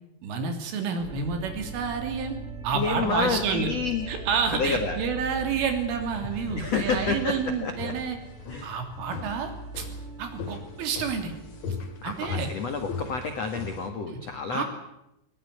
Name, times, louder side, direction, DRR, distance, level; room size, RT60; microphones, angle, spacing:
voice 1, 0.2-2.4 2.6-3.7 4.1-8.2 8.6-9.9 10.2-11.3 11.7-11.8 12.0-12.5 14.1-14.2 14.5-14.7, right 6 dB, 75° right, 6 dB, 5.6 m, -29 dB
sound 1, 1.0-12.4, right 3 dB, 45° right, 8.0 m, -40 dB
voice 2, 2.7-4.1 4.5-5.0 6.5-7.9 8.5-8.7 12.0-14.6, left 4 dB, 70° left, 7 dB, 1.5 m, -29 dB
sound 2, 4.2-13.9, left 5 dB, 45° left, 2.9 m, -40 dB
21.0 x 20.0 x 9.8 m, 0.87 s
omnidirectional pair, 5.8 m